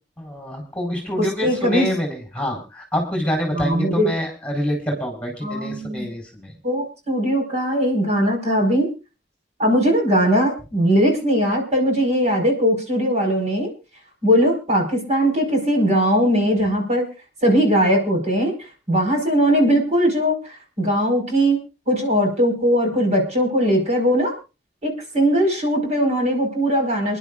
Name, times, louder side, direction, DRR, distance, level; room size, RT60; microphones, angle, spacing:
voice 1, 0.2-6.5, equal, 5° left, 0 dB, 4.4 m, -26 dB
voice 2, 1.2-1.9 3.5-4.1 5.4-6.1 6.6-8.9 9.6-13.7 14.2-17.1 17.4-18.5 18.9-24.3 24.8-27.2, equal, 40° right, 2 dB, 5.0 m, -20 dB
28.0 x 11.0 x 2.5 m, 0.30 s
head